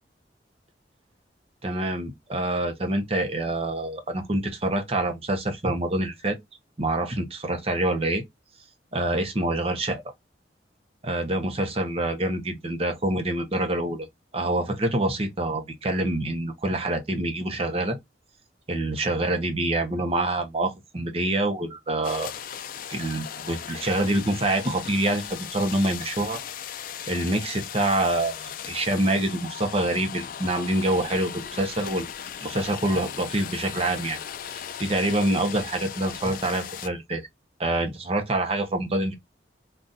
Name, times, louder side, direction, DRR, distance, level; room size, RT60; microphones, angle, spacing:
voice 1, 1.6-6.4 6.8-8.2 8.9-10.0 11.0-14.1 14.3-18.0 18.7-22.3 22.9-26.4 27.1-32.1 32.4-34.2 34.4-34.5 34.8-37.2 37.6-39.2, right 1 dB, 35° right, 0.7 m, -26 dB
ns roomba, 22.0-36.9, left 9 dB, 50° left, 0.3 m, -37 dB
3.8 x 2.3 x 2.6 m
head